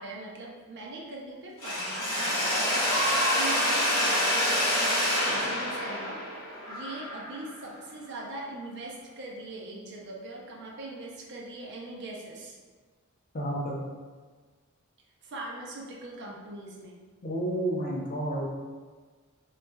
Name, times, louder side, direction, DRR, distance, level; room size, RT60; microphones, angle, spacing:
voice 1, 0.0-6.2 6.5-12.6 15.2-17.0, right 2 dB, 50° right, -1 dB, 0.6 m, -41 dB
Mechanisms, 1.6-7.5, equal, 65° left, 1.3 m, -27 dB
voice 2, 13.3-13.8 17.2-18.4, right 1 dB, 40° left, -3 dB, 0.6 m, -30 dB
4.1 x 2.4 x 2.2 m, 1.4 s
head